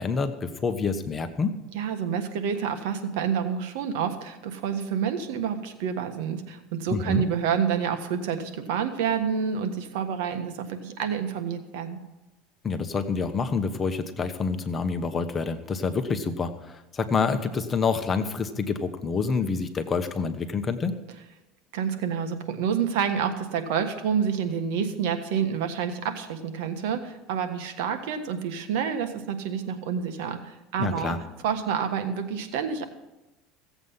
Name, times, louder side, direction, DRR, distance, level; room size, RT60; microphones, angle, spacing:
voice 1, 0.0-1.5 6.9-7.2 12.6-21.0 30.8-31.2, left 5 dB, 25° left, 8 dB, 1.1 m, -27 dB
voice 2, 1.7-12.0 21.7-31.1 31.4-32.9, right 7 dB, 80° right, 7 dB, 1.5 m, -28 dB
16.0 x 8.0 x 5.6 m, 1.0 s
supercardioid pair, 120°, 0 cm